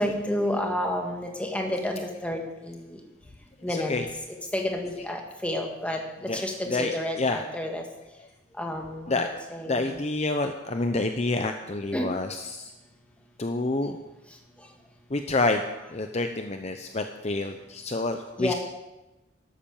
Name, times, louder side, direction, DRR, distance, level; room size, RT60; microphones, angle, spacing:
voice 1, 0.0-3.0 3.6-3.9 4.5-7.8 8.6-10.0 11.9-12.1 18.4-18.5, left 1 dB, 5° left, 2 dB, 1.8 m, -30 dB
voice 2, 3.7-4.1 6.3-6.4 6.7-6.9 7.2-7.4 9.1-9.3 9.7-12.7 13.4-14.0 15.1-15.6 15.9-18.5, left 2 dB, 35° left, 6 dB, 0.7 m, -28 dB
13.0 x 12.0 x 7.1 m, 1.0 s
head